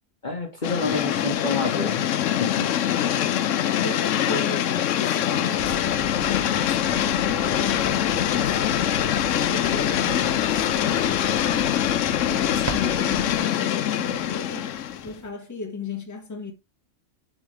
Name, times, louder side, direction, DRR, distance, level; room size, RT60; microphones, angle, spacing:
voice 1, 0.2-2.1 2.4-2.7, left 3 dB, 40° left, 1.4 m, -28 dB
sound 1, 0.6-15.1, left 10 dB, 80° left, 1.0 m, -24 dB
voice 2, 2.5-8.8 9.1-11.8 12.3-16.5, left 4 dB, 15° left, 1.3 m, -36 dB
sound 2, 5.5-13.4, right 8 dB, 75° right, 1.1 m, -40 dB
sound 3, 9.8-15.3, right 2 dB, 20° right, 0.5 m, -42 dB
7.1 x 4.2 x 3.2 m
omnidirectional pair, 1.3 m